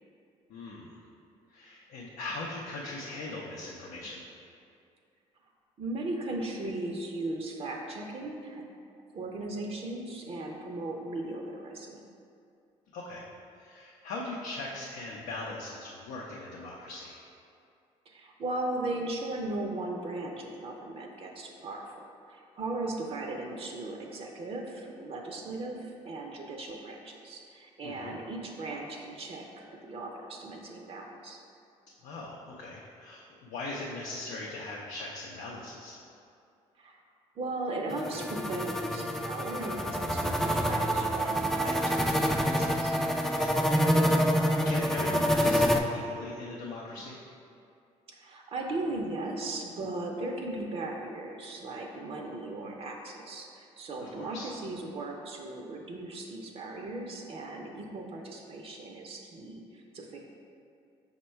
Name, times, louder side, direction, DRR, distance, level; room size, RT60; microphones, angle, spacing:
voice 1, 0.5-1.0 1.5-4.2 12.9-13.2 13.6-17.2 27.8-28.2 32.0-36.0 43.7-47.2 54.0-54.5, left 2 dB, 80° left, -3 dB, 0.5 m, -40 dB
voice 2, 5.8-8.6 9.1-12.0 18.1-21.9 22.3-31.4 36.8-37.0 37.4-42.9 48.1-60.2, right 2 dB, 50° right, 1 dB, 0.6 m, -37 dB
sound 1, 37.9-45.8, equal, 5° left, 0.3 m, -27 dB
5.3 x 2.2 x 4.3 m, 2.4 s
supercardioid pair, 75°, 13 cm